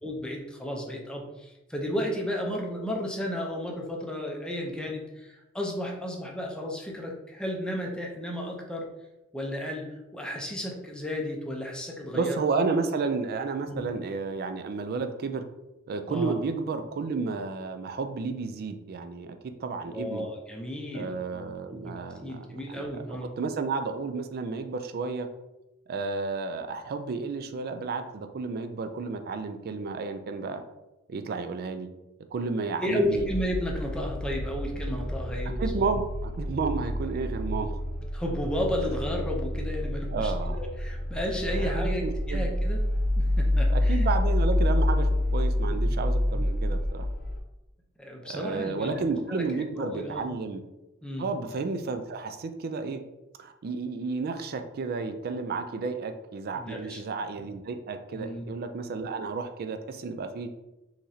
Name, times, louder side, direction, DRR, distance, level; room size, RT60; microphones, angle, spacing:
voice 1, 0.0-8.9 9.3-12.4 13.7-13.8 16.1-16.4 19.8-21.9 22.2-23.3 32.8-35.9 38.1-40.3 40.6-42.8 43.2-44.1 48.0-49.0 49.3-49.4 49.8-50.2 51.0-51.3 56.5-57.0 57.4-57.5 58.1-58.4, equal, 5° left, -1 dB, 0.6 m, -33 dB
voice 2, 12.1-15.4 15.9-20.3 20.9-25.3 25.9-30.6 31.1-31.9 32.3-33.3 35.6-37.8 40.1-40.6 41.5-42.5 43.7-47.1 48.2-50.6 51.2-53.0 53.4-60.5, right 4 dB, 45° right, 8 dB, 0.4 m, -32 dB
sound 1, 33.1-47.4, left 1 dB, 45° left, 0.7 m, -28 dB
3.9 x 3.0 x 2.7 m, 0.96 s
head